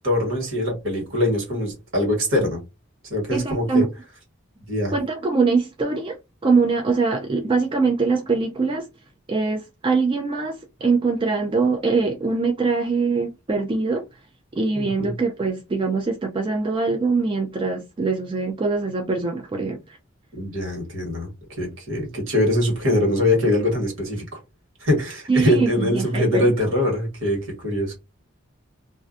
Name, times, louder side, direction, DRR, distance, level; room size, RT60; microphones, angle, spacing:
voice 1, 0.0-2.6 3.1-3.8 4.6-4.9 14.7-15.1 20.4-24.4 24.8-27.9, left 1 dB, 70° right, 1.4 m, -23 dB
voice 2, 3.3-3.9 4.9-8.9 9.3-14.0 14.5-20.0 25.3-26.5, right 4 dB, 25° right, 0.3 m, -23 dB
2.5 x 2.2 x 2.4 m
head